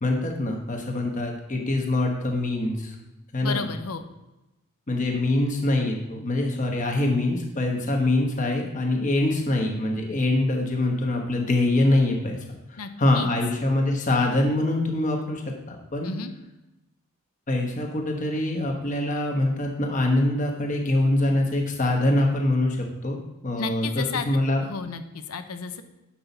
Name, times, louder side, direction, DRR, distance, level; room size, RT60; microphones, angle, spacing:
voice 1, 0.0-2.9 3.3-3.7 4.9-12.4 12.7-16.1 17.5-23.2 23.4-24.6, left 1 dB, 35° left, 2 dB, 1.1 m, -24 dB
voice 2, 3.4-4.0 12.8-13.3 16.0-16.3 23.6-24.3 24.6-25.8, left 5 dB, 90° left, 8 dB, 0.7 m, -32 dB
7.0 x 6.1 x 4.0 m, 0.98 s
head